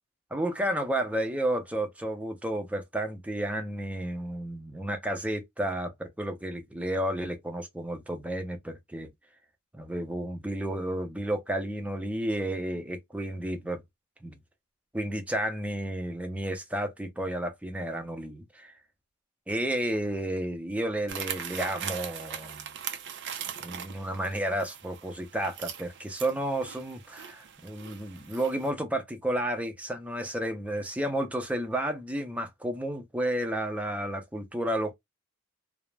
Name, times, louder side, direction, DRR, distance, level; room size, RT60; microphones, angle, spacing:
voice 1, 0.3-9.1 9.7-13.8 14.2-14.3 14.9-18.8 19.5-22.7 23.6-34.9, right 1 dB, 5° right, 0.5 m, -32 dB
sound 1, 21.1-28.7, right 9 dB, 55° right, 0.4 m, -40 dB
2.4 x 2.0 x 3.1 m
head